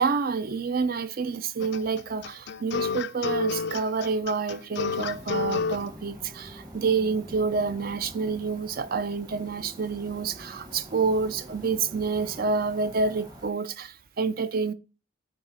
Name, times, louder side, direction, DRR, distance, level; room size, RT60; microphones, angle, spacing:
voice 1, 0.0-14.7, right 4 dB, 45° right, 0.5 m, -28 dB
sound 1, 1.6-5.8, left 5 dB, 55° left, 0.3 m, -29 dB
sound 2, 5.0-13.5, equal, 20° right, 1.1 m, -45 dB
9.2 x 3.8 x 4.0 m
head